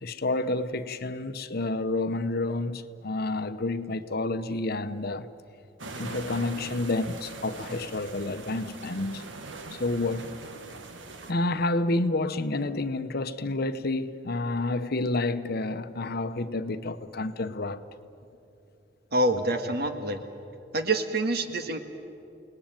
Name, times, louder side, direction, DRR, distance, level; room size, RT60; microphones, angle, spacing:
voice 1, 0.0-5.3 6.0-9.3 9.7-10.3 11.3-17.8, left 2 dB, 55° left, 0.9 m, -29 dB
sound 1, 5.8-11.3, right 3 dB, 85° right, 1.7 m, -41 dB
voice 2, 19.1-20.2 20.7-21.8, right 1 dB, 60° right, 1.8 m, -26 dB
29.5 x 19.5 x 9.0 m
head